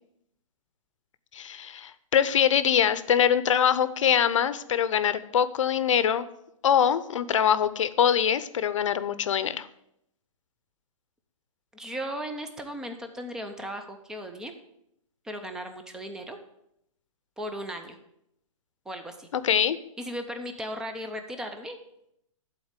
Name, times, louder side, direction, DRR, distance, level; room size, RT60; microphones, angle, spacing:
voice 1, 1.3-6.3 6.6-9.7 19.3-19.8, left 8 dB, 65° left, 14 dB, 0.8 m, -23 dB
voice 2, 11.7-14.5 15.2-16.4 17.4-18.0 18.9-19.3 20.0-21.8, equal, 5° right, 6 dB, 0.6 m, -36 dB
11.5 x 4.2 x 8.1 m, 0.79 s
hypercardioid pair, 165°, 17 cm